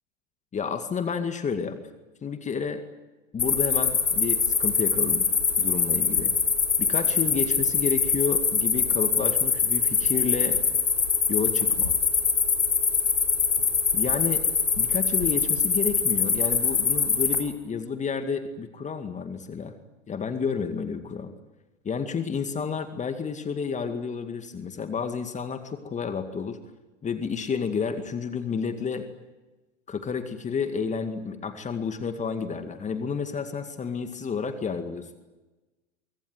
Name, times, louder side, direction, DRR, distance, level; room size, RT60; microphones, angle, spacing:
voice 1, 0.5-1.8 2.2-2.8 3.3-5.3 5.6-6.3 6.8-10.6 11.3-11.9 13.9-14.4 14.8-19.8 20.1-21.3 21.8-26.6 27.0-29.1 29.9-35.2, left 6 dB, 20° left, 8 dB, 2.1 m, -30 dB
sound 1, 3.4-17.4, left 5 dB, 80° left, 3.7 m, -23 dB
24.5 x 24.0 x 9.5 m, 1.1 s
figure-of-eight pair, 90°, 37 cm